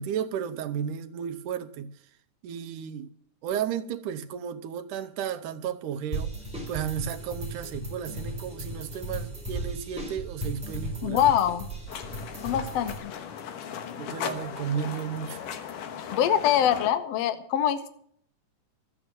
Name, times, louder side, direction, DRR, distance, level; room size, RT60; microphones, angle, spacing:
voice 1, 0.0-1.9 2.4-3.1 3.4-6.4 6.7-11.2 14.0-15.4, right 8 dB, 85° right, 2.3 m, -33 dB
sound 1, 6.1-13.0, right 1 dB, ahead, 4.0 m, -36 dB
voice 2, 11.0-11.7 12.4-13.1 16.1-17.9, left 10 dB, 65° left, 1.9 m, -24 dB
sound 2, 11.9-16.9, left 8 dB, 85° left, 2.8 m, -37 dB
13.5 x 8.6 x 7.7 m
omnidirectional pair, 3.6 m